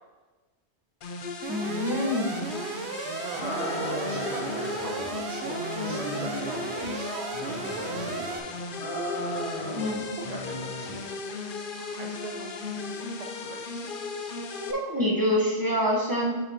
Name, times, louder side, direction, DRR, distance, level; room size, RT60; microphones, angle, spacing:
sound 1, 1.0-14.7, left 4 dB, 60° left, 0.7 m, -36 dB
Alarm, 1.4-8.4, right 6 dB, 80° right, 0.8 m, -36 dB
voice 1, 1.5-2.5 9.7-10.0 14.6-16.3, left 1 dB, 20° right, -3 dB, 1.0 m, -26 dB
voice 2, 3.0-9.2 10.2-11.2 11.8-14.0, right 5 dB, 50° right, 1 dB, 0.5 m, -42 dB
sound 2, 3.3-5.1 5.4-6.9 7.3-8.4 8.8-9.9 10.2-11.0, equal, 80° left, 2.4 m, -35 dB
9.4 x 4.8 x 2.9 m, 1.2 s
omnidirectional pair, 1.1 m